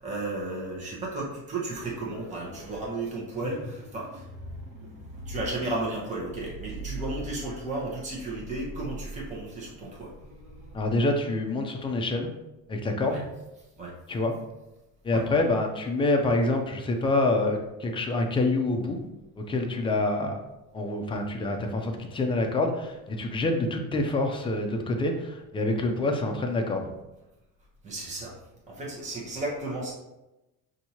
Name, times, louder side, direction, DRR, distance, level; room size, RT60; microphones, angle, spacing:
voice 1, 0.0-4.3 4.8-10.1 13.1-13.2 13.8-13.9 15.1-15.2 27.8-28.4 28.7-29.9, right 2 dB, 20° right, -4 dB, 1.0 m, -34 dB
sound 1, 1.7-2.9 3.3-11.0, right 1 dB, 70° right, 1.3 m, -42 dB
voice 2, 10.7-12.3 12.7-13.2 14.1-14.3 15.0-19.0 19.4-20.4 20.7-26.9, left 2 dB, 15° left, 3 dB, 0.4 m, -26 dB
5.9 x 2.7 x 2.8 m, 0.97 s
cardioid pair, 150°, 34 cm